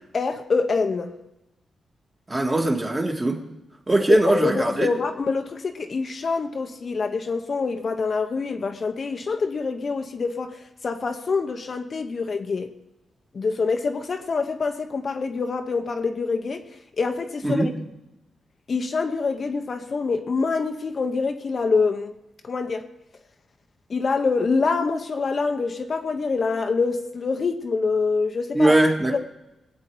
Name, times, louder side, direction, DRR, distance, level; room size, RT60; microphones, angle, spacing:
voice 1, 0.1-1.1 4.1-12.7 13.3-16.6 17.0-17.7 18.7-22.1 22.4-22.8 23.9-28.8 29.1-29.2, left 4 dB, 40° left, 0.9 m, -25 dB
voice 2, 2.3-3.4 3.9-4.9 17.4-17.7 28.5-29.2, right 1 dB, 15° right, 1.6 m, -20 dB
21.0 x 8.5 x 4.7 m
wide cardioid pair, 120°, 0 cm